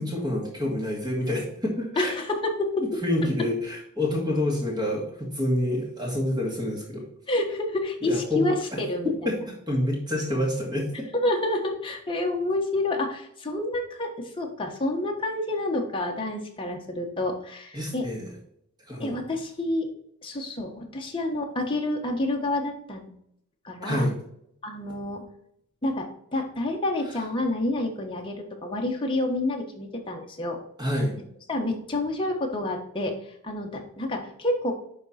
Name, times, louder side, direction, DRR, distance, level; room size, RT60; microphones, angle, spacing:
voice 1, 0.0-2.1 2.8-7.0 8.0-10.9 17.7-18.3 18.9-19.2 23.8-24.1 30.8-31.1, left 1 dB, 20° right, -2 dB, 2.3 m, -28 dB
voice 2, 2.0-2.7 7.3-9.1 11.1-18.1 19.0-19.9 20.2-23.1 23.6-24.0 24.6-25.2 25.8-28.4 28.6-30.6 31.5-33.1 33.4-34.7, left 2 dB, 25° left, 1 dB, 1.3 m, -28 dB
10.5 x 3.7 x 4.2 m, 0.72 s
head